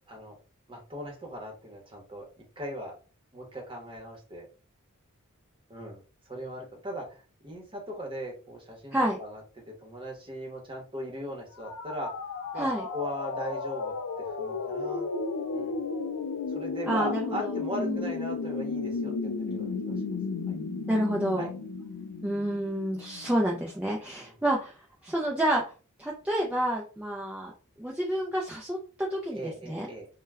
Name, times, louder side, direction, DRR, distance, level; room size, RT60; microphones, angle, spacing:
voice 1, 0.7-2.3 2.6-2.9 3.3-4.5 5.7-6.0 6.3-9.4 9.8-12.1 12.5-12.7 12.9-15.1 15.5-15.8 16.5-19.9 20.5-20.6 21.4-21.5 24.2-24.3 29.3-30.1, equal, 25° right, 0 dB, 0.8 m, -38 dB
sound 1, 11.6-23.4, left 4 dB, 85° left, 0.4 m, -34 dB
voice 2, 16.9-18.1 20.9-21.5 22.2-24.8 25.0-25.6 26.0-27.5 27.8-29.9, right 1 dB, 5° right, -2 dB, 0.3 m, -29 dB
2.1 x 2.1 x 3.4 m, 0.36 s
head